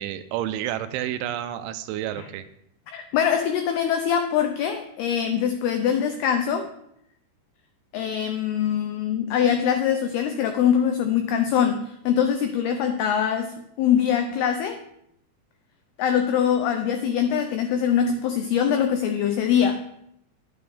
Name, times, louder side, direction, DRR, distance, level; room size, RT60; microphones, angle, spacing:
voice 1, 0.0-2.5, right 12 dB, 85° right, 11 dB, 3.0 m, -30 dB
voice 2, 2.9-6.7 7.9-14.8 16.0-19.8, left 8 dB, 90° left, 6 dB, 2.2 m, -23 dB
11.5 x 9.5 x 3.5 m, 0.76 s
omnidirectional pair, 5.5 m